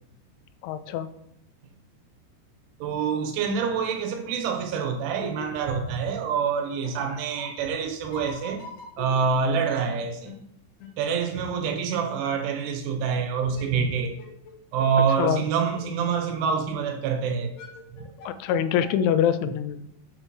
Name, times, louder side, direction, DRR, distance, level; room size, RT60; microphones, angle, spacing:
voice 1, 0.6-1.1 15.2-15.4 18.3-19.8, left 9 dB, 85° left, 3.0 m, -24 dB
voice 2, 2.8-8.6 9.0-10.3 11.0-14.2 14.7-17.5 17.9-18.1, right 6 dB, 85° right, 3.5 m, -26 dB
sound 1, 3.3-3.4 3.9-4.0 4.7-6.2 6.5-6.6 6.8-6.9 7.4-7.5 8.1-9.6 9.8-9.9 10.2-10.4 10.8-10.9 11.5-11.6 13.4-14.5 14.8-14.9 15.2-15.3 15.7-15.8 16.4-16.5 17.1-17.2 17.4-18.5 18.8-18.9, left 5 dB, 65° left, 3.7 m, -43 dB
7.9 x 4.3 x 6.1 m
omnidirectional pair, 5.4 m